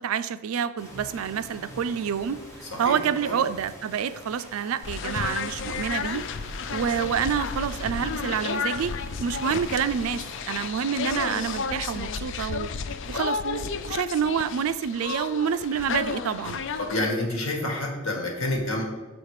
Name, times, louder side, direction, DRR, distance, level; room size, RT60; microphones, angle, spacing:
voice 1, 0.0-2.4 2.8-6.2 6.7-12.7 13.1-16.6, right 7 dB, 85° right, 13 dB, 0.4 m, -28 dB
sound 1, 0.8-10.7, equal, 15° left, 1.2 m, -45 dB
voice 2, 2.7-3.4 16.8-18.8, left 1 dB, 80° left, 1 dB, 1.6 m, -28 dB
sound 2, 4.8-17.1, left 5 dB, 60° left, 0.4 m, -32 dB
6.5 x 5.1 x 4.8 m, 1.3 s
head